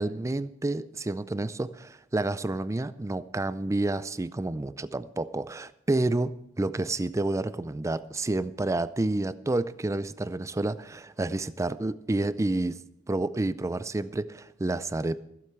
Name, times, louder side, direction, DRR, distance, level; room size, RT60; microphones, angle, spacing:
voice 1, 0.0-12.8 13.1-15.2, right 2 dB, 15° right, 15 dB, 0.4 m, -29 dB
15.5 x 7.9 x 6.0 m, 0.79 s
head